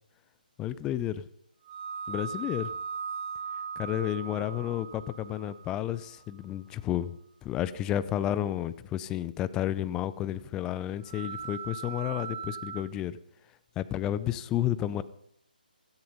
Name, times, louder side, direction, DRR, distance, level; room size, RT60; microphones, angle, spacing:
voice 1, 0.6-1.2 2.1-2.7 3.8-7.1 7.4-13.2 13.8-15.0, left 12 dB, 15° left, 16 dB, 0.5 m, -31 dB
sound 1, 1.6-6.1 11.0-12.8, right 6 dB, 25° right, 3.1 m, -39 dB
15.5 x 13.5 x 5.4 m, 0.70 s
figure-of-eight pair, 145°, 5 cm